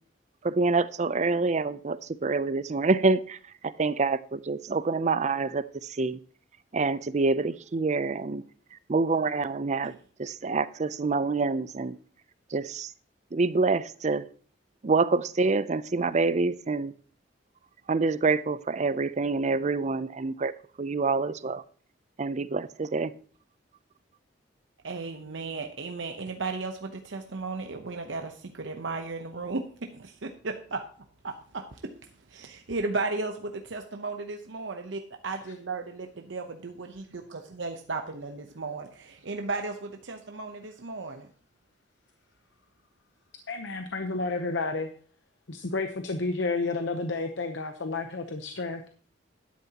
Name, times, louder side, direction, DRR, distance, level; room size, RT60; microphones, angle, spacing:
voice 1, 0.4-3.4 3.6-6.2 6.7-8.4 8.9-9.9 10.2-12.0 12.5-12.9 13.3-14.2 14.8-16.9 17.9-20.5 20.8-21.6 22.2-23.1, right 3 dB, 40° right, 16 dB, 0.5 m, -26 dB
voice 2, 24.8-30.9 31.2-31.9 32.3-37.2 37.6-41.3, right 3 dB, 75° right, 4 dB, 0.9 m, -35 dB
voice 3, 43.5-44.9 45.5-48.9, left 3 dB, 70° left, 6 dB, 0.9 m, -31 dB
12.0 x 10.5 x 2.9 m, 0.43 s
head